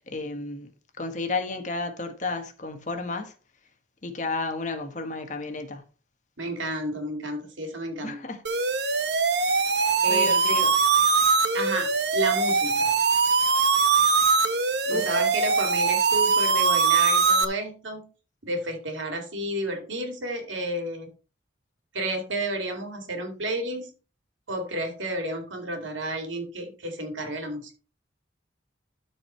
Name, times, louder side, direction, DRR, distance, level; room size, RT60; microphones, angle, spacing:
voice 1, 0.1-0.7 1.0-3.3 4.0-5.8 8.0-8.4 9.8-10.7 14.9-15.1, left 3 dB, 40° left, 1.5 m, -32 dB
voice 2, 6.4-8.2 10.0-10.7 11.5-12.9 14.9-18.1 18.4-21.1 21.9-23.9 24.5-27.7, right 1 dB, 85° right, 2.7 m, -31 dB
sound 1, 8.4-17.4, right 4 dB, 60° right, 1.0 m, -22 dB
12.5 x 4.7 x 4.5 m
head